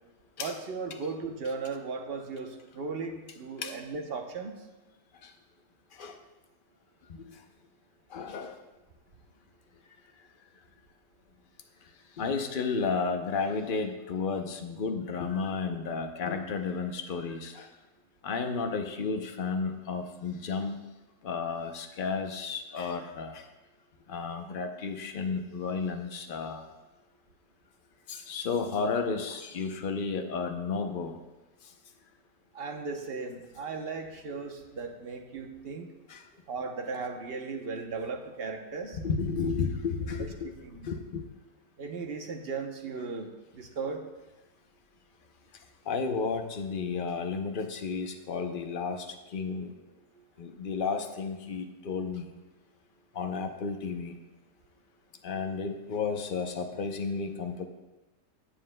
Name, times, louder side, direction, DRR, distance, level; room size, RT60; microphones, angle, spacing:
voice 1, 0.4-4.6 32.5-35.9 36.5-39.0 40.4-40.9 41.8-43.3 43.5-44.0 50.1-50.2, right 4 dB, 45° right, 4 dB, 0.8 m, -36 dB
voice 2, 8.1-8.6 12.2-17.7 18.2-20.8 21.2-23.4 24.1-26.6 28.1-31.1 36.1-36.2 39.0-40.5 40.8-41.3 45.9-49.8 50.4-52.3 53.1-54.1 55.2-57.6, left 5 dB, 60° left, 5 dB, 0.5 m, -32 dB
16.5 x 7.5 x 2.2 m, 1.1 s
omnidirectional pair, 1.8 m